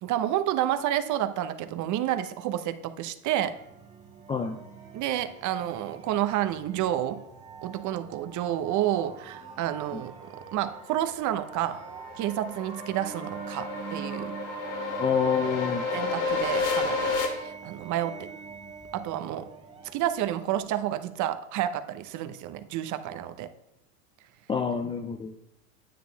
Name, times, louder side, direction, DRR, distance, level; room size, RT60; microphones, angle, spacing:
voice 1, 0.0-3.6 4.9-7.2 7.6-11.8 12.2-14.3 15.9-18.3 18.9-19.5 19.9-23.5, right 12 dB, 40° right, 11 dB, 0.9 m, -30 dB
sound 1, 3.5-21.0, right 6 dB, 15° right, 2.0 m, -44 dB
sound 2, 10.7-17.3, left 4 dB, 70° left, 3.1 m, -31 dB
voice 2, 15.0-15.8 24.5-25.4, left 6 dB, 15° left, 6 dB, 0.3 m, -27 dB
9.7 x 9.2 x 3.4 m, 0.86 s
hypercardioid pair, 100°, 43 cm